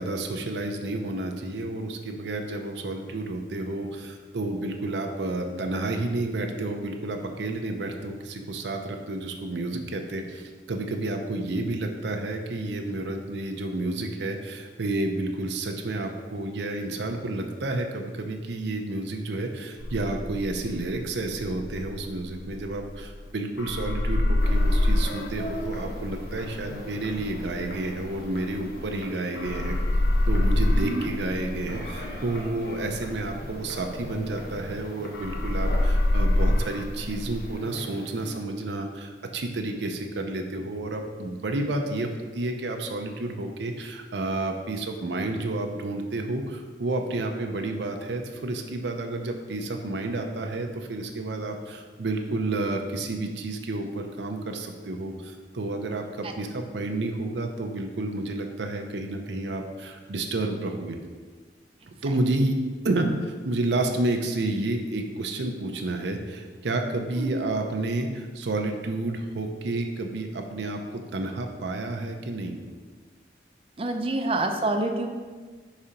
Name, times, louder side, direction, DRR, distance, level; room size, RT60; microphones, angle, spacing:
voice 1, 0.0-29.8 30.3-61.0 62.0-62.5 62.8-72.6, right 2 dB, 80° right, 4 dB, 0.6 m, -30 dB
sound 1, 19.8-23.3 23.6-29.1 29.4-34.8 35.1-37.5, left 1 dB, 80° left, 0.5 m, -26 dB
sound 2, 24.4-38.4, equal, 55° left, 0.9 m, -41 dB
voice 2, 73.8-75.1, right 2 dB, 30° right, 5 dB, 0.5 m, -27 dB
4.9 x 4.2 x 5.1 m, 1.4 s
head